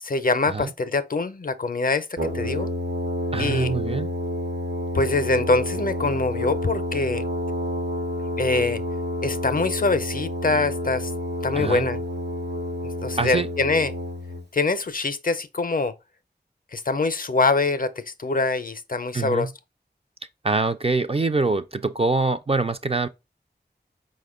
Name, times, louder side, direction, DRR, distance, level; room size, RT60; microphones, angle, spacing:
voice 1, 0.0-2.7 3.4-3.7 4.9-7.2 8.4-8.8 9.2-11.1 11.4-12.0 13.0-13.9 14.5-15.9 16.7-19.5, left 3 dB, 50° left, 0.5 m, -24 dB
Brass instrument, 2.2-14.4, left 1 dB, 70° right, 0.9 m, -29 dB
voice 2, 3.3-4.1 11.5-11.9 13.2-13.5 19.1-19.5 20.4-23.1, right 3 dB, 35° right, 0.4 m, -24 dB
4.8 x 2.1 x 3.5 m
wide cardioid pair, 40°, 18 cm